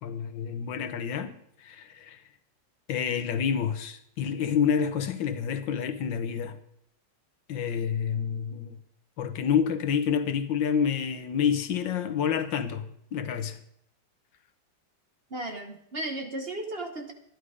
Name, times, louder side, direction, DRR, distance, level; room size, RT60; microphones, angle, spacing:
voice 1, 0.0-1.3 1.6-2.2 2.9-6.6 7.5-8.8 9.2-13.6, left 7 dB, 90° left, 1.7 m, -28 dB
voice 2, 15.3-17.1, right 1 dB, 40° right, 1.0 m, -35 dB
11.5 x 11.0 x 4.9 m
omnidirectional pair, 2.0 m